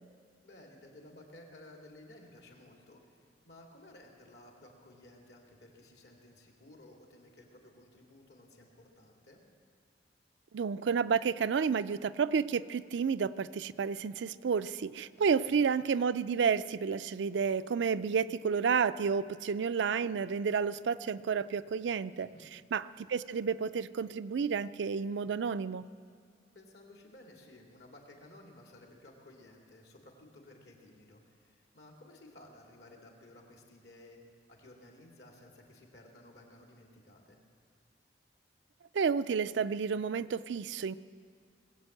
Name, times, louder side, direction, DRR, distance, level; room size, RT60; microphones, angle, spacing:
voice 1, 0.4-9.4 15.1-15.3 22.1-22.5 26.5-34.2 34.5-37.4, left 1 dB, 70° left, 0 dB, 2.3 m, -56 dB
voice 2, 10.5-22.3 22.7-25.8 38.9-40.9, right 6 dB, 80° right, 14 dB, 0.4 m, -31 dB
20.0 x 8.2 x 7.7 m, 2.2 s
head